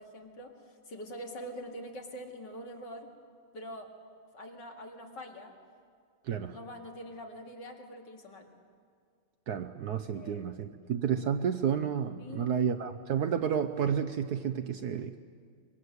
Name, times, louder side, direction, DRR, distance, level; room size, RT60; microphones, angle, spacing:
voice 1, 0.0-3.1 3.5-3.9 4.3-5.6 6.5-8.5 10.1-10.4 12.2-12.5, equal, 60° left, 1 dB, 2.9 m, -44 dB
voice 2, 9.5-15.2, right 7 dB, 65° right, 9 dB, 1.1 m, -31 dB
24.5 x 22.0 x 8.0 m, 2.1 s
omnidirectional pair, 2.2 m